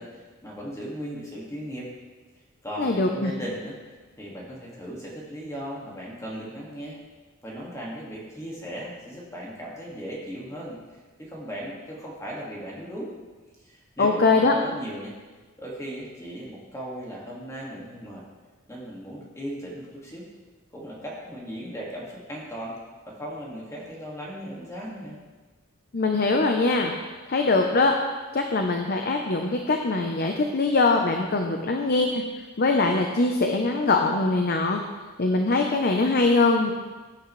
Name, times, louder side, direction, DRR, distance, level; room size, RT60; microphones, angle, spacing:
voice 1, 0.0-1.9 2.6-3.8 4.2-7.0 7.4-13.1 13.6-15.1 15.6-18.2 18.7-20.3 20.7-22.8 23.1-25.2, equal, 15° left, -4 dB, 2.0 m, -37 dB
voice 2, 2.8-3.3 14.0-14.5 25.9-26.9 27.3-27.9 28.3-32.2 32.6-34.8 35.2-36.7, left 3 dB, 50° left, 3 dB, 0.7 m, -22 dB
16.5 x 8.6 x 3.2 m, 1.3 s
head